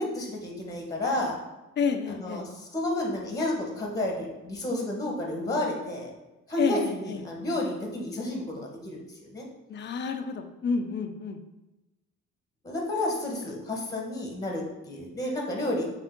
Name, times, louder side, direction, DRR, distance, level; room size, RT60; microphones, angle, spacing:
voice 1, 0.0-1.3 2.1-6.1 6.5-9.0 9.3-9.4 12.6-15.8, left 1 dB, 10° left, -1 dB, 1.1 m, -31 dB
voice 2, 1.8-2.4 6.6-7.2 9.7-11.4, left 5 dB, 35° left, 6 dB, 0.5 m, -29 dB
3.6 x 3.6 x 3.6 m, 1.0 s
cardioid pair, 90°, 30 cm